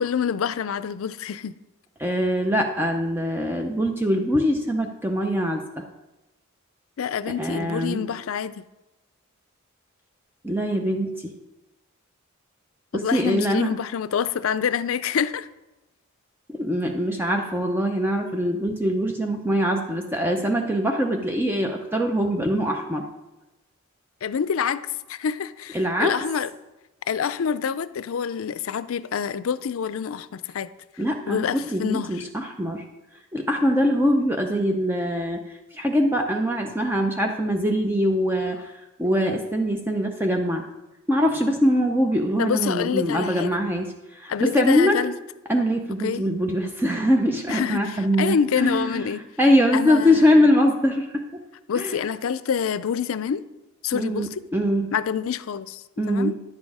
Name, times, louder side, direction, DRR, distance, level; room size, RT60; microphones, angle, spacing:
voice 1, 0.0-1.5 7.0-8.5 13.0-15.5 24.2-26.5 27.1-30.7 31.3-32.2 42.4-43.6 44.3-45.2 46.0-46.3 47.5-49.2 49.7-50.5 51.7-53.4 53.8-54.4 54.9-56.3, left 7 dB, 70° left, 15 dB, 0.4 m, -27 dB
voice 2, 2.0-5.6 7.4-8.0 10.4-11.3 12.9-13.7 16.5-23.0 25.7-26.1 31.0-32.8 33.3-35.4 35.7-40.7 41.1-45.0 45.5-49.1 49.4-51.1 51.8-52.0 53.9-54.9 56.0-56.4, equal, 10° right, 3 dB, 0.6 m, -23 dB
10.5 x 7.5 x 4.8 m, 1.0 s
head